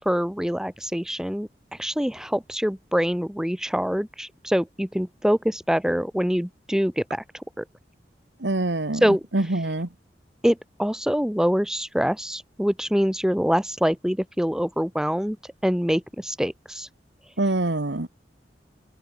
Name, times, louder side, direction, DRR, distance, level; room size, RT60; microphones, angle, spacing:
voice 1, 0.0-1.5 1.8-7.2 7.6-7.7 9.0-9.2 10.4-15.4 15.6-16.9, equal, 5° right, 1.6 m, -24 dB
voice 2, 8.4-9.0 9.3-9.9 17.4-18.1, right 2 dB, 80° right, 1.7 m, -24 dB
head